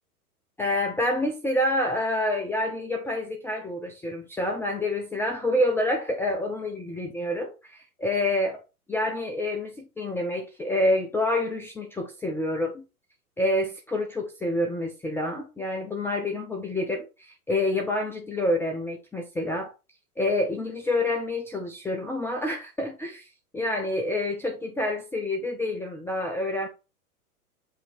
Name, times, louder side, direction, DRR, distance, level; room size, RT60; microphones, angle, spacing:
voice 1, 0.6-8.6 8.9-12.8 13.4-19.7 20.2-23.3 23.5-26.7, left 1 dB, 5° left, 0.6 m, -28 dB
7.3 x 3.0 x 4.3 m
figure-of-eight pair, 105°, 45 cm